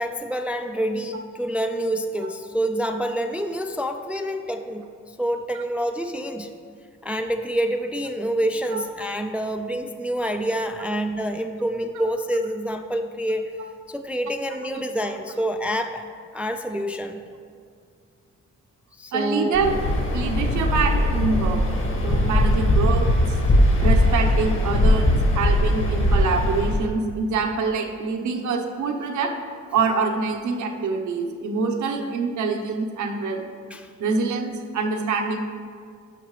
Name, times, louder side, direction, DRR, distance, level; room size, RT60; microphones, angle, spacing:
voice 1, 0.0-6.5 7.0-13.5 13.9-16.0 16.3-17.2 18.9-19.5 22.3-22.4 33.7-33.9, equal, 5° right, 6 dB, 0.3 m, -27 dB
voice 2, 19.1-19.8 20.1-21.6 22.0-23.4 23.8-29.3 29.7-33.4 34.0-35.4, right 4 dB, 70° right, 4 dB, 0.9 m, -25 dB
Waves surf, 19.5-26.9, left 1 dB, 45° left, 1.5 m, -20 dB
12.0 x 5.8 x 3.2 m, 2.2 s
cardioid pair, 90°, 30 cm